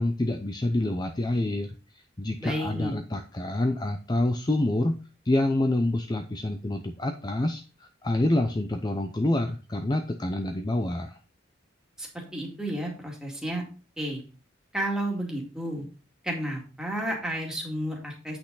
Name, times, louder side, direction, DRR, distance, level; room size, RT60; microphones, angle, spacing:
voice 1, 0.0-5.0 5.3-11.2, left 1 dB, 20° left, 6 dB, 0.5 m, -27 dB
voice 2, 2.4-2.9 12.0-13.6 14.0-14.2 14.7-15.9 16.2-18.4, right 1 dB, 5° right, -1 dB, 2.3 m, -31 dB
8.7 x 6.1 x 4.0 m, 0.34 s
head